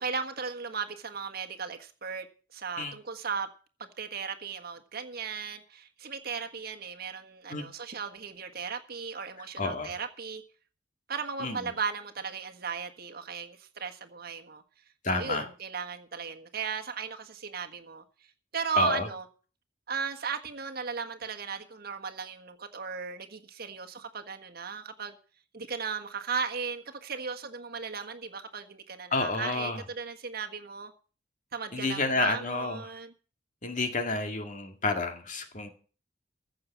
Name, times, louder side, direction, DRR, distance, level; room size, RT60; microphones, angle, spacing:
voice 1, 0.0-2.3 2.5-3.5 3.8-10.4 11.1-14.6 15.1-18.0 18.5-19.2 19.9-25.2 25.5-30.9 31.5-33.1, right 5 dB, 55° right, 1.5 m, -36 dB
voice 2, 9.6-9.9 11.4-11.7 15.0-15.5 18.7-19.1 29.1-29.8 31.7-32.9 33.6-35.7, left 3 dB, 45° left, 2.0 m, -30 dB
15.0 x 6.7 x 7.2 m
head